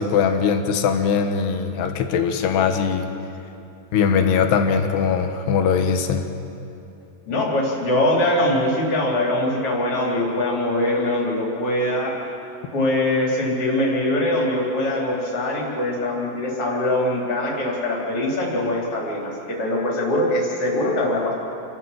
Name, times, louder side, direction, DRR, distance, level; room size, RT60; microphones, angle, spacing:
voice 1, 0.0-3.1 3.9-6.2, left 6 dB, 75° left, 6 dB, 3.2 m, -20 dB
voice 2, 7.3-12.2 12.7-21.3, left 1 dB, 35° left, -3 dB, 4.6 m, -22 dB
29.0 x 13.0 x 7.6 m, 2.7 s
omnidirectional pair, 4.9 m